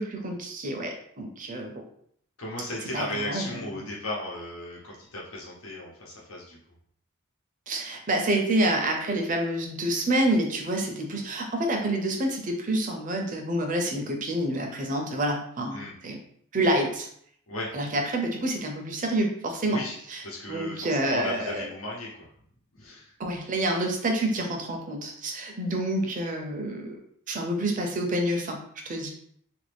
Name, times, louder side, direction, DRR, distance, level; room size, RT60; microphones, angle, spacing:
voice 1, 0.0-1.8 2.9-3.6 7.7-16.2 16.5-17.1 17.7-19.8 20.1-20.2 20.5-21.7 23.2-27.0 27.3-28.6 28.8-29.1, right 1 dB, 40° right, 2 dB, 0.6 m, -28 dB
voice 2, 2.4-6.6 15.7-15.9 17.5-17.7 19.7-20.0 20.2-22.3 22.7-23.1, left 1 dB, 90° left, -4 dB, 1.0 m, -36 dB
2.9 x 2.6 x 3.4 m, 0.66 s
head